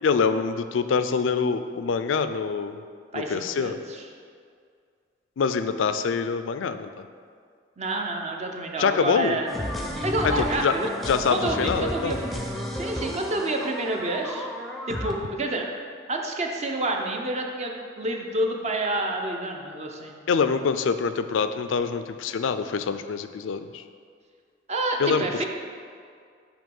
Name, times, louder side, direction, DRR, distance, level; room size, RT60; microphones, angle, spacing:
voice 1, 0.0-2.8 3.1-3.8 5.4-6.9 8.8-9.4 10.2-10.7 11.1-12.2 20.3-23.8 25.0-25.4, left 5 dB, 85° left, 10 dB, 0.4 m, -25 dB
voice 2, 3.1-4.1 7.8-9.5 10.0-10.9 11.3-12.3 12.7-14.5 14.9-15.7 16.1-20.2 24.7-25.5, right 2 dB, 35° right, 2 dB, 0.7 m, -29 dB
sound 1, 9.5-15.1, equal, ahead, 0.6 m, -32 dB
8.8 x 3.0 x 5.4 m, 2.2 s
head